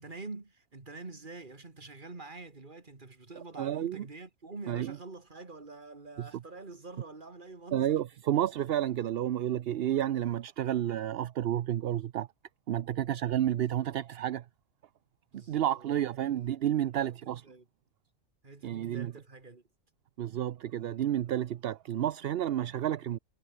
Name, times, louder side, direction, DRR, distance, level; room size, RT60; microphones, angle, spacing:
voice 1, 0.0-8.0 15.3-15.9 16.2-16.4 17.0-17.7 18.4-19.6, right 3 dB, 35° right, 2.6 m, -46 dB
voice 2, 3.6-4.0 4.7-5.0 6.2-6.3 7.7-12.3 12.7-14.5 15.3-17.4 18.6-19.1 20.2-23.2, right 11 dB, 60° right, 0.7 m, -30 dB
omnidirectional pair, 1.5 m